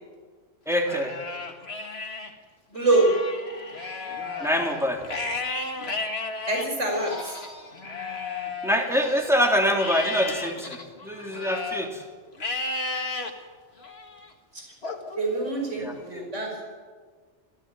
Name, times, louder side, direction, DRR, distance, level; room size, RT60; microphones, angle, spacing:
Livestock farm animals working animals, 0.7-2.3 2.7-9.3 9.8-11.9 12.4-13.3 13.8-14.3 14.8-15.9, left 3 dB, 55° left, 2.3 m, -34 dB
voice 1, 0.7-1.2 4.4-5.1 8.6-12.0 13.8-14.1 15.8-16.2, equal, ahead, 0 dB, 3.6 m, -25 dB
voice 2, 2.7-3.1 6.5-7.3 15.2-16.5, right 2 dB, 80° right, 0 dB, 5.8 m, -24 dB
28.0 x 15.5 x 9.3 m, 1.5 s
omnidirectional pair, 1.2 m